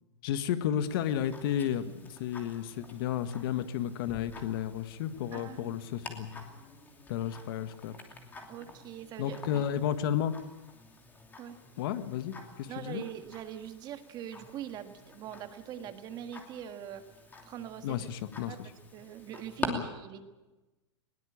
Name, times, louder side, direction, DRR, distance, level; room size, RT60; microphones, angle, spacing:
voice 1, 0.2-6.4 7.1-8.0 9.2-10.3 11.8-13.0 17.8-18.5 19.6-19.8, left 10 dB, 50° left, 11 dB, 1.6 m, -32 dB
Tick-tock, 0.8-19.7, left 3 dB, 10° left, 2.8 m, -48 dB
voice 2, 5.3-5.8 8.5-9.6 11.4-11.6 12.7-17.0 17.5-18.0 18.5-18.6 18.9-20.3, right 10 dB, 25° right, 9 dB, 1.6 m, -42 dB
21.0 x 18.5 x 8.7 m, 1.1 s
hypercardioid pair, 150°, 15 cm